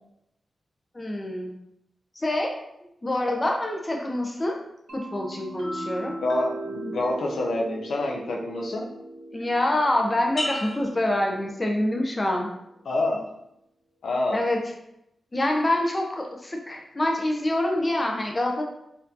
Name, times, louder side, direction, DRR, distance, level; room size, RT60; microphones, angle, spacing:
voice 1, 0.9-1.5 2.2-2.5 3.0-4.6 4.9-6.2 9.3-12.5 14.3-14.6 15.3-18.6, left 1 dB, 25° left, 1 dB, 0.6 m, -26 dB
Vibraphone Transition Music Cue, 4.9-12.5, right 2 dB, 80° right, 1.0 m, -39 dB
voice 2, 6.2-8.9 12.8-13.2 14.0-14.4, left 2 dB, 85° left, 0 dB, 0.6 m, -27 dB
sound 1, 10.4-12.1 12.6-13.1, left 1 dB, 60° left, 0.9 m, -35 dB
4.2 x 2.6 x 2.7 m, 0.80 s
wide cardioid pair, 85°, 0 cm